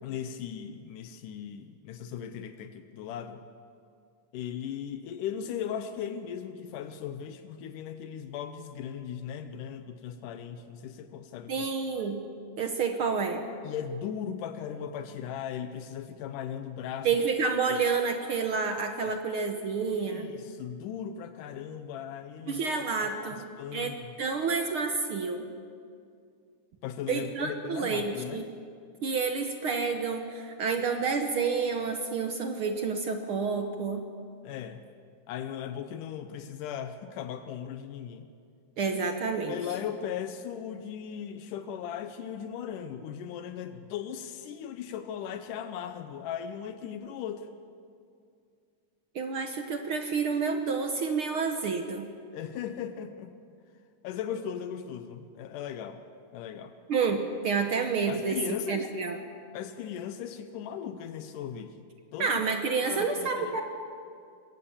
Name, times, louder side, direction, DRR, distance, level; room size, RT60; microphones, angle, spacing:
voice 1, 0.0-3.4 4.3-11.7 13.6-17.1 17.7-17.8 19.0-19.2 19.9-24.1 26.8-28.5 34.4-34.8 35.3-38.3 39.5-47.5 52.3-53.4 54.0-56.0 56.3-56.7 58.1-59.1 59.5-62.4 62.9-63.6, left 8 dB, 85° left, 9 dB, 2.4 m, -38 dB
voice 2, 11.5-12.3 12.6-13.4 17.0-20.3 22.5-23.4 23.7-25.4 27.1-28.4 29.0-34.1 38.8-39.6 49.1-52.1 56.9-58.4 58.7-59.2 62.2-63.6, right 5 dB, 65° right, 5 dB, 1.4 m, -29 dB
22.0 x 17.5 x 7.2 m, 2.3 s
omnidirectional pair, 3.6 m